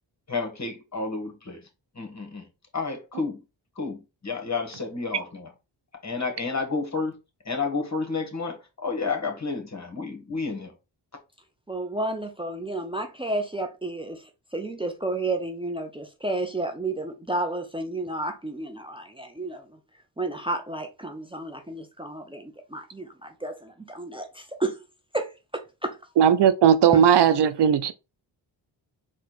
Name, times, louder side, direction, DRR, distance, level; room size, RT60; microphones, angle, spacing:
voice 1, 0.3-1.7 1.9-2.5 2.7-3.4 3.7-5.5 6.0-7.2 7.4-10.7, left 4 dB, 35° left, 1.6 m, -31 dB
voice 2, 11.7-14.2 14.5-19.6 20.2-24.8 25.1-26.0, right 2 dB, 10° right, 0.7 m, -31 dB
voice 3, 26.2-27.9, right 8 dB, 65° right, 0.5 m, -17 dB
4.3 x 2.4 x 4.1 m
cardioid pair, 50°, 45 cm